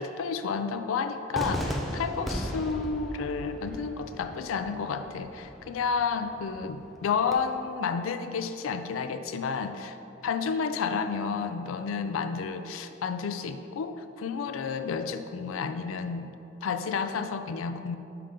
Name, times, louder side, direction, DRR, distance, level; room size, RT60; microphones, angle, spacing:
voice 1, 0.0-10.0 10.2-16.3 16.6-18.0, left 5 dB, 90° left, 9 dB, 0.3 m, -31 dB
Cheering / Fireworks, 1.3-7.3, equal, ahead, 0.4 m, -37 dB
5.6 x 5.0 x 3.7 m, 2.8 s
head